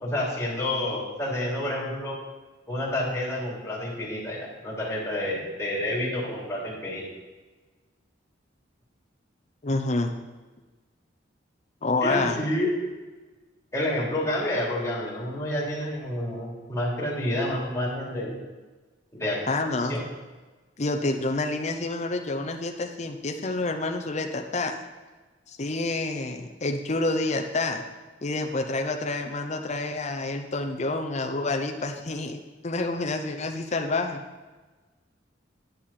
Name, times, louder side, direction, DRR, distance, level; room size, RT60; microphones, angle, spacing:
voice 1, 0.0-2.2 2.7-7.0 12.0-12.7 13.7-18.3 19.1-19.4 19.8-20.0, left 1 dB, 15° left, -6 dB, 3.1 m, -29 dB
voice 2, 9.6-10.1 11.8-12.4 19.5-20.0 20.8-24.8 25.5-27.8 28.2-34.2, left 2 dB, 40° left, 4 dB, 0.7 m, -28 dB
10.5 x 9.6 x 4.2 m, 1.3 s
head